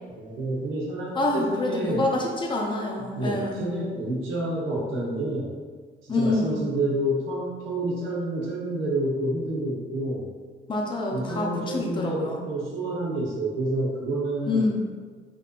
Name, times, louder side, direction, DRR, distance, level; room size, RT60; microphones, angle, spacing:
voice 1, 0.1-2.2 3.0-5.5 6.0-10.3 11.1-14.7, right 1 dB, 85° right, -4 dB, 0.9 m, -29 dB
voice 2, 1.2-3.6 6.1-6.6 10.7-12.4 14.5-14.9, left 2 dB, 25° left, -1 dB, 0.5 m, -26 dB
3.7 x 2.6 x 2.3 m, 1.5 s
cardioid pair, 90°, 20 cm